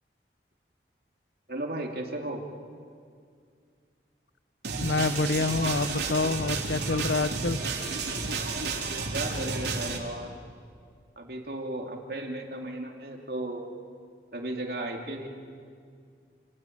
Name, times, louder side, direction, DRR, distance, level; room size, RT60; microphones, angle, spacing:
voice 1, 1.5-2.4 9.1-10.3 11.2-13.6 14.3-15.3, right 1 dB, 60° right, 2 dB, 2.9 m, -35 dB
sound 1, 4.6-10.0, right 3 dB, 80° right, 3.8 m, -31 dB
voice 2, 4.8-7.6, left 3 dB, 80° left, 15 dB, 0.8 m, -27 dB
28.5 x 19.0 x 9.5 m, 2.2 s
head